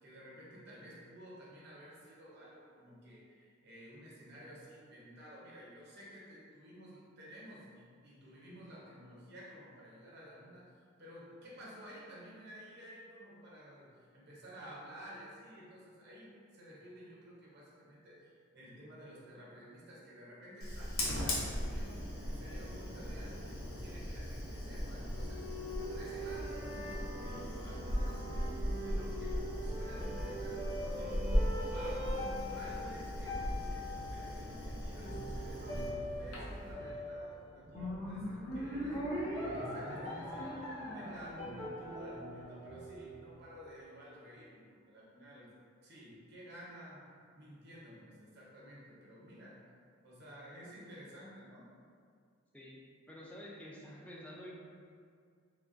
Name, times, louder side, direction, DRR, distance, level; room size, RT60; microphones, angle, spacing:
voice 1, 0.0-25.5 25.9-31.3 31.6-40.7 40.9-45.5 45.8-47.1 47.3-49.6 50.0-51.7, equal, 55° right, -6 dB, 0.7 m, -53 dB
Fire, 20.6-36.7, equal, 90° left, 0.6 m, -38 dB
sound 1, 24.9-43.4, equal, 55° left, 1.0 m, -42 dB
voice 2, 53.1-54.5, equal, 5° left, -4 dB, 0.3 m, -49 dB
3.3 x 2.1 x 2.5 m, 2.2 s
head